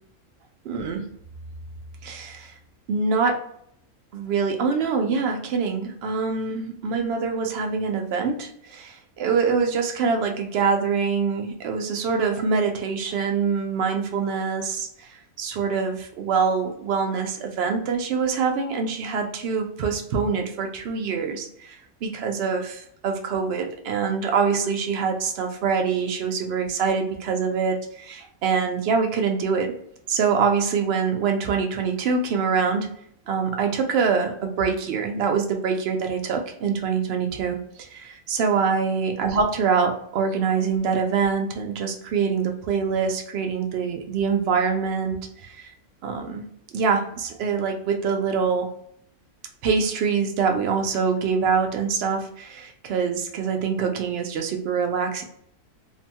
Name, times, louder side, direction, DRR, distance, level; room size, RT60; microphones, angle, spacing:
voice 1, 0.7-1.1 2.0-2.5 2.9-3.5 4.1-29.7 30.1-32.9 33.3-45.7 46.0-46.4 46.7-48.7 49.6-55.2, right 5 dB, 70° right, 4 dB, 0.5 m, -25 dB
2.7 x 2.2 x 2.7 m, 0.69 s
omnidirectional pair, 1.6 m